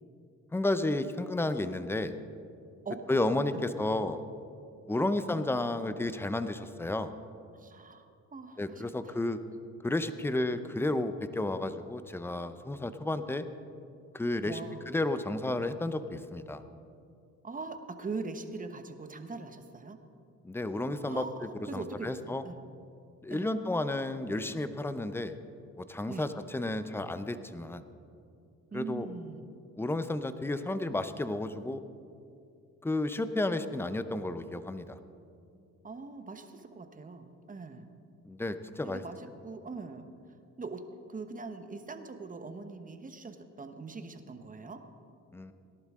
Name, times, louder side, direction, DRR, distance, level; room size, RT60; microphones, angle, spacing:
voice 1, 0.5-2.1 3.1-4.2 4.9-7.1 8.6-9.4 9.8-13.5 14.1-14.6 14.9-16.6 20.4-21.3 21.7-22.4 23.2-25.3 25.8-27.8 28.7-29.1 29.8-31.8 32.8-35.0 38.2-39.0 45.3-45.5, left 2 dB, 10° left, 11 dB, 0.6 m, -32 dB
voice 2, 3.3-4.1 5.0-5.2 7.5-9.2 14.4-14.9 17.4-20.0 21.0-22.6 23.3-23.5 26.1-26.3 28.7-29.5 35.8-37.9 38.8-40.1 40.6-44.8, right 4 dB, 25° right, 8 dB, 1.1 m, -42 dB
18.0 x 11.5 x 3.7 m, 2.5 s
cardioid pair, 90°, 30 cm